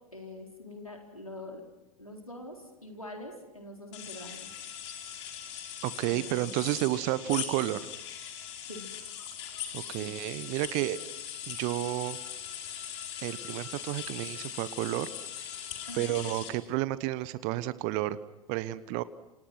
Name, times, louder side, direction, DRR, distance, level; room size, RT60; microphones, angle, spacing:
voice 1, 0.1-1.6 2.0-4.6 6.0-6.6 8.7-8.9 10.0-10.1 15.9-16.3, left 1 dB, 90° left, 2 dB, 4.3 m, -44 dB
sound 1, 3.9-16.5, left 9 dB, 55° left, 4.8 m, -40 dB
voice 2, 5.8-7.9 9.7-11.0 11.5-12.2 13.2-15.1 15.9-18.2 18.5-19.0, right 16 dB, 45° right, 16 dB, 1.2 m, -31 dB
29.5 x 29.0 x 6.1 m, 1.0 s
figure-of-eight pair, 85°, 17 cm